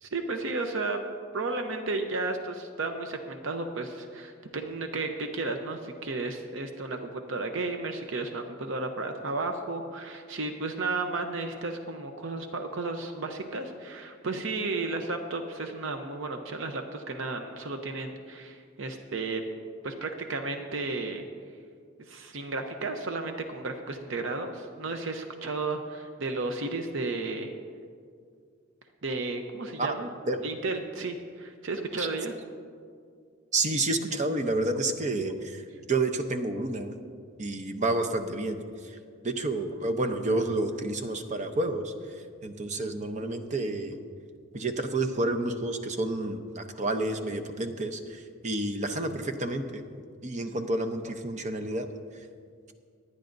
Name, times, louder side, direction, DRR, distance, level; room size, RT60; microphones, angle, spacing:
voice 1, 0.0-1.0 1.3-19.4 19.8-21.2 22.1-27.5 29.0-30.1 30.4-32.3, right 3 dB, 65° right, 5 dB, 0.7 m, -33 dB
voice 2, 33.5-35.6 35.9-37.0 37.4-39.0 39.2-44.0 44.5-49.8 50.2-51.9, right 2 dB, 35° right, 6 dB, 0.7 m, -30 dB
25.5 x 9.8 x 2.6 m, 2.2 s
head